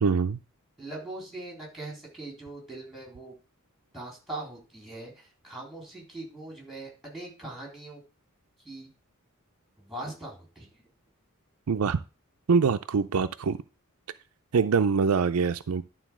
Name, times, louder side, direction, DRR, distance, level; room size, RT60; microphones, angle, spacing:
voice 1, 0.0-0.4 11.7-12.0 12.5-13.6 14.5-15.8, right 5 dB, 70° right, 0.5 m, -24 dB
voice 2, 0.8-3.4 3.9-8.0 8.6-8.9 9.8-10.7, right 2 dB, ahead, 3.7 m, -41 dB
11.5 x 3.9 x 6.1 m
head